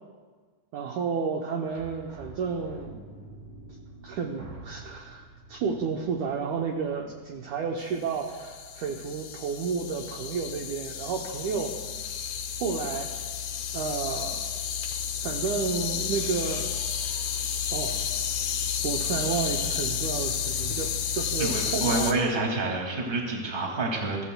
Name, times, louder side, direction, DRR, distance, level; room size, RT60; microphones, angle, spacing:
voice 1, 0.7-3.1 4.0-11.8 12.6-13.1 13.7-14.5 15.2-16.7 17.7-18.0 18.8-22.2, right 5 dB, 80° right, 1 dB, 1.7 m, -31 dB
sound 1, 1.7-3.2 3.9-4.0 4.4-5.2, right 2 dB, 60° right, 3.1 m, -47 dB
sound 2, 1.8-8.9, right 2 dB, 40° right, 4.1 m, -51 dB
sound 3, 8.1-22.1, left 8 dB, 75° left, 1.8 m, -31 dB
voice 2, 21.4-24.2, right 3 dB, 20° right, -1 dB, 1.4 m, -28 dB
23.0 x 15.0 x 2.3 m, 1.5 s
omnidirectional pair, 4.6 m